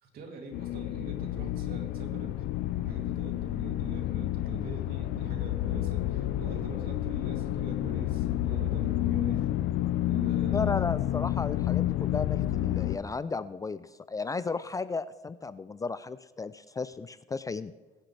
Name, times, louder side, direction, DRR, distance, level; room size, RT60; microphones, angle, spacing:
voice 1, 0.0-2.4 2.8-9.5 10.1-10.7 11.1-11.2, right 2 dB, 60° right, 1 dB, 3.0 m, -44 dB
sound 1, 0.5-13.0, left 13 dB, 85° left, 0.6 m, -30 dB
voice 2, 10.5-17.7, left 4 dB, 20° left, 15 dB, 0.4 m, -34 dB
21.0 x 10.0 x 3.4 m, 1.2 s
cardioid pair, 110°, 17 cm